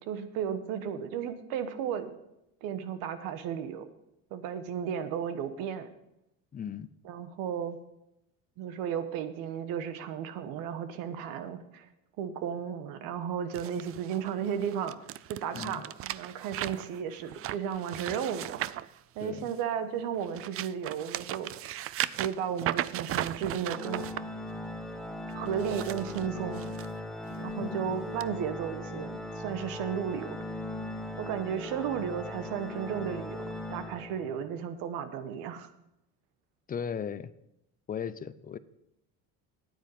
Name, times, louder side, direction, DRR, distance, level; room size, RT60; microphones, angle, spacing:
voice 1, 0.0-2.1 2.6-3.9 4.3-5.9 7.0-7.8 8.6-11.8 12.2-15.0 15.3-21.5 22.1-24.1 25.3-26.8 27.4-30.4 31.2-35.7, right 8 dB, 80° right, 11 dB, 1.2 m, -34 dB
voice 2, 6.5-6.9 15.5-15.8 19.2-19.4 27.6-27.9 36.7-37.3 37.9-38.6, left 7 dB, 25° left, 16 dB, 0.5 m, -36 dB
sound 1, 13.5-19.7 20.1-24.2 25.5-26.9 27.3-27.6 28.2-28.3, right 13 dB, 40° right, 0.4 m, -37 dB
Organ, 23.7-34.5, left 1 dB, ahead, 1.0 m, -39 dB
9.6 x 9.2 x 5.4 m, 0.83 s
cardioid pair, 110°, 34 cm